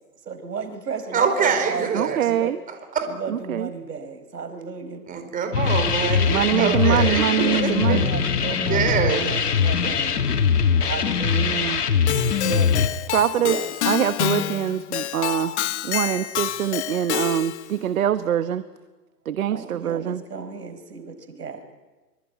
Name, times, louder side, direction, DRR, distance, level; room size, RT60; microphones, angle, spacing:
voice 1, 0.2-2.5 3.1-5.0 7.3-10.2 10.7-11.6 12.4-12.9 13.4-13.7 19.5-21.6, right 5 dB, 75° right, 10 dB, 4.9 m, -33 dB
voice 2, 1.1-2.2 2.9-3.1 5.1-8.0 8.7-9.3 9.8-9.9, right 6 dB, 15° right, 7 dB, 4.5 m, -24 dB
voice 3, 1.9-2.6 3.3-3.7 6.3-8.1 11.3-11.8 13.1-13.6 13.8-15.6 15.8-18.6 19.2-20.2, right 10 dB, 60° right, 12 dB, 1.4 m, -24 dB
sound 1, 5.5-12.9, left 6 dB, 75° left, 2.4 m, -22 dB
Keyboard (musical), 12.1-17.7, left 13 dB, 45° left, 1.2 m, -28 dB
25.0 x 24.5 x 9.3 m, 1.2 s
hypercardioid pair, 125°, 47 cm